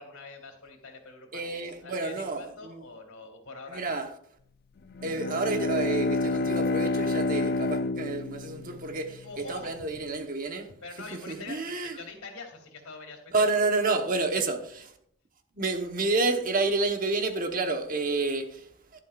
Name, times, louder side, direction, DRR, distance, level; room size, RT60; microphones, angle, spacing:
voice 1, 0.0-4.0 9.2-10.0 10.8-13.6 13.9-14.0, left 3 dB, 80° left, 2.9 m, -45 dB
voice 2, 1.3-2.8 3.7-4.1 5.0-10.7 11.1-12.0 13.3-14.8 15.5-19.0, right 3 dB, 40° right, 1.1 m, -29 dB
Bowed string instrument, 4.9-9.5, left 2 dB, 45° left, 0.5 m, -29 dB
12.0 x 11.5 x 2.5 m
head